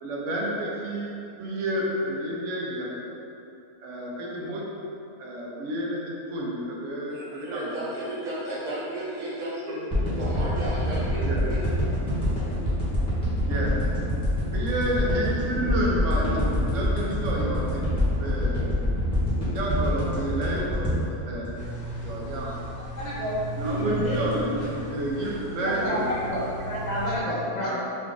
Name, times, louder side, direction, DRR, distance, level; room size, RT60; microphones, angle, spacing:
voice 1, 0.0-2.9 3.8-4.7 5.2-6.0 6.3-7.9 9.7-9.8 11.2-11.4 13.5-13.8 14.5-17.9 18.2-18.7 19.4-21.5 22.0-22.6 23.5-26.0 27.6-27.8, right 1 dB, 65° right, -3 dB, 0.9 m, -30 dB
voice 2, 7.1-9.9 10.2-11.6, right 1 dB, 80° right, -9 dB, 1.6 m, -33 dB
sound 1, 9.9-22.2 22.6-22.7, left 1 dB, 5° left, 1.0 m, -26 dB
sound 2, 21.5-27.2, right 1 dB, 75° left, 1.4 m, -35 dB
voice 3, 23.0-24.5 24.8-24.9 25.6-26.4 26.6-27.8, equal, 50° left, -9 dB, 0.5 m, -29 dB
3.8 x 2.4 x 3.6 m, 2.8 s
omnidirectional pair, 1.6 m